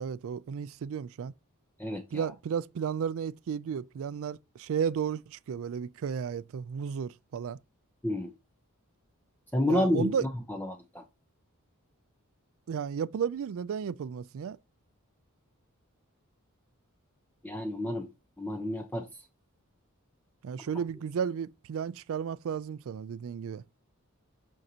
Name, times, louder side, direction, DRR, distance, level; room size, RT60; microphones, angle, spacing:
voice 1, 0.0-1.3 2.1-7.6 9.7-10.3 12.7-14.6 20.4-23.6, right 7 dB, 65° right, 0.3 m, -33 dB
voice 2, 1.8-2.2 8.0-8.3 9.5-10.3 10.6-11.0 17.4-18.1 18.4-19.1, left 1 dB, 10° left, 0.7 m, -30 dB
9.0 x 5.4 x 2.8 m
head